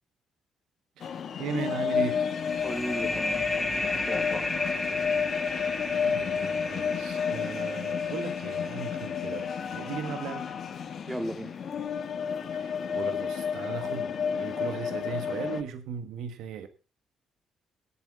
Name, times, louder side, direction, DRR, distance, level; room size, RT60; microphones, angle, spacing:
sound 1, 1.0-15.6, left 7 dB, 60° left, 1.3 m, -31 dB
voice 1, 1.0-2.2 6.0-10.4 12.5-16.7, right 7 dB, 75° right, 1.3 m, -37 dB
sound 2, 2.0-11.2, left 1 dB, 15° left, 3.2 m, -35 dB
voice 2, 2.6-4.7 11.1-11.5, right 1 dB, 10° right, 2.3 m, -37 dB
18.0 x 8.3 x 4.7 m
hypercardioid pair, 50°, 0 cm